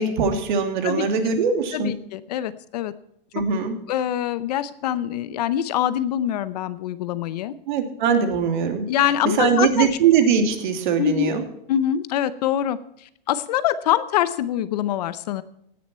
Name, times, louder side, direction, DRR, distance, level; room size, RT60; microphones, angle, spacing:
voice 1, 0.0-1.9 3.3-3.8 7.7-8.9 9.4-11.4, right 6 dB, 55° right, 6 dB, 2.7 m, -21 dB
voice 2, 1.7-2.9 3.9-7.5 8.9-9.9 11.0-11.3 11.7-15.4, left 11 dB, 45° left, 15 dB, 0.7 m, -24 dB
16.5 x 10.0 x 4.3 m, 0.75 s
supercardioid pair, 170°, 29 cm